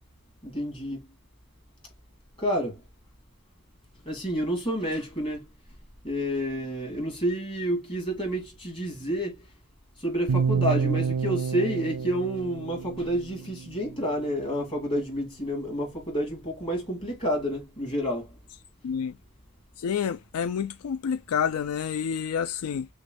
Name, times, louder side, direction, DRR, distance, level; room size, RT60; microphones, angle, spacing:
voice 1, 0.4-1.0 2.4-2.8 4.0-5.5 6.0-9.4 10.0-18.3, equal, 25° left, 2.6 m, -29 dB
sound 1, 10.3-14.4, right 6 dB, 85° right, 0.4 m, -29 dB
voice 2, 19.8-22.9, left 7 dB, 75° left, 0.4 m, -29 dB
6.2 x 2.3 x 2.6 m
head